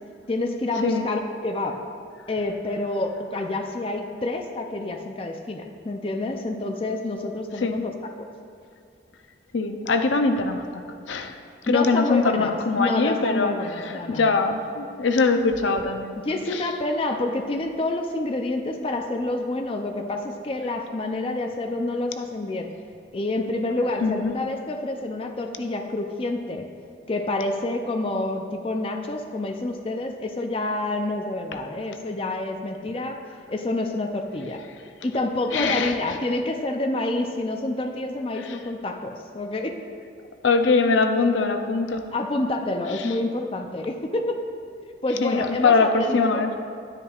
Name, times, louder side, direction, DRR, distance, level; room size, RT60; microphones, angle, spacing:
voice 1, 0.3-1.8 2.3-8.3 11.7-12.5 12.8-14.3 16.2-22.7 23.1-26.7 27.1-33.2 33.5-34.6 35.0-39.8 42.1-44.4 45.0-46.4, left 2 dB, 30° left, 4 dB, 0.4 m, -28 dB
voice 2, 9.5-10.8 11.1-11.3 11.7-13.5 13.8-16.2 16.5-16.6 24.0-24.3 35.5-35.9 40.4-42.0 45.2-46.5, left 4 dB, 85° left, 7 dB, 0.6 m, -22 dB
10.0 x 9.7 x 2.4 m, 2.4 s
head